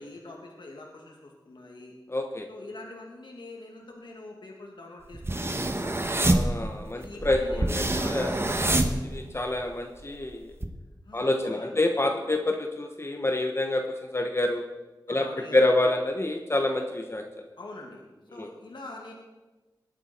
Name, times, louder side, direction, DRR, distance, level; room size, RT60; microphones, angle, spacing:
voice 1, 0.0-1.9 2.5-6.5 6.9-9.1 11.0-11.8 15.1-15.8 17.6-18.0 18.3-19.1, left 2 dB, 75° left, 0 dB, 2.4 m, -44 dB
voice 2, 2.1-2.5 6.2-8.3 9.1-10.6 11.1-14.6 15.1-15.3 15.5-17.2 18.4-18.5, left 2 dB, 30° left, 4 dB, 1.2 m, -27 dB
sound 1, 5.1-9.6 10.0-10.6, right 1 dB, 30° right, 1.2 m, -26 dB
20.0 x 9.1 x 4.5 m, 1.2 s
wide cardioid pair, 60°, 8 cm